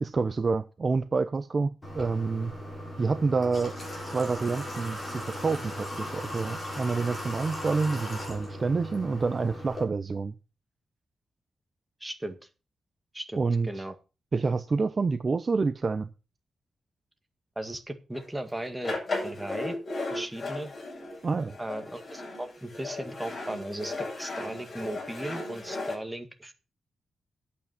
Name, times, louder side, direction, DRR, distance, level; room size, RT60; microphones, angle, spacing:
voice 1, 0.0-2.5 3.0-3.8 4.0-10.3 13.4-13.8 14.3-16.1 21.2-21.6, right 4 dB, 35° right, 11 dB, 0.7 m, -28 dB
Water / Water tap faucet, 1.8-9.8, equal, 20° left, 7.4 m, -38 dB
voice 2, 12.0-12.4 13.1-13.9 17.6-18.9 19.2-19.8 20.1-20.7 21.6-26.5, right 1 dB, 10° right, 7 dB, 1.9 m, -37 dB
sound 1, 18.1-18.2 18.6-25.9, left 2 dB, 35° left, 7.8 m, -36 dB
11.0 x 8.7 x 5.9 m, 0.33 s
cardioid pair, 110°, 0 cm